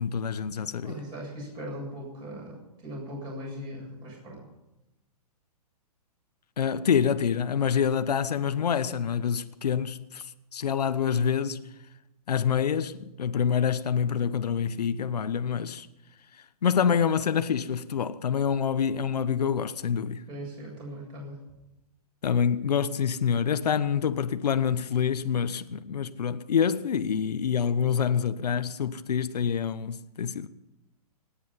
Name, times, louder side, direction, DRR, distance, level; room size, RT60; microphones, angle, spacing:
voice 1, 0.0-1.0 6.6-10.2 10.5-11.7 12.3-15.9 16.6-20.2 22.2-30.5, left 7 dB, 85° left, 1.0 m, -26 dB
voice 2, 0.8-4.4 20.3-21.4, equal, 20° right, 7.8 m, -39 dB
25.0 x 10.0 x 5.7 m
hypercardioid pair, 155°, 20 cm